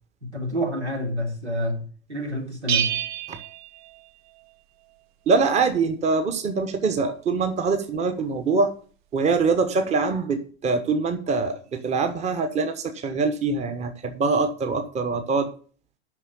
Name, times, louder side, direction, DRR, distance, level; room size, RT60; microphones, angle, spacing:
voice 1, 0.2-3.0, equal, 85° right, 3.2 m, -28 dB
Bell, 2.7-4.5, right 10 dB, 45° right, 1.0 m, -29 dB
voice 2, 5.3-8.7 9.1-15.5, right 4 dB, 20° right, 1.2 m, -24 dB
9.2 x 5.8 x 7.9 m
figure-of-eight pair, 95°, 33 cm